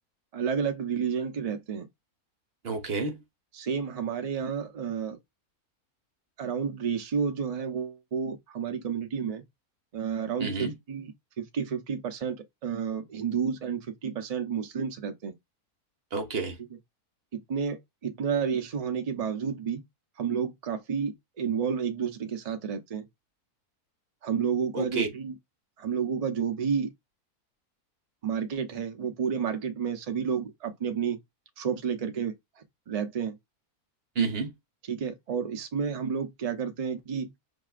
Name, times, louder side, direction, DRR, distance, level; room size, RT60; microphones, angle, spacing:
voice 1, 0.3-1.9 3.5-5.2 6.4-9.4 9.9-12.4 12.6-15.3 17.3-19.8 20.2-23.1 24.2-25.3 25.8-26.9 28.2-31.2 31.6-32.3 32.9-33.4 34.9-37.3, right 6 dB, 70° right, 0.3 m, -31 dB
voice 2, 2.6-3.2 10.4-10.7 16.1-16.6 24.7-25.1 34.2-34.5, right 4 dB, 45° right, 1.0 m, -29 dB
5.6 x 2.8 x 2.4 m
omnidirectional pair, 1.6 m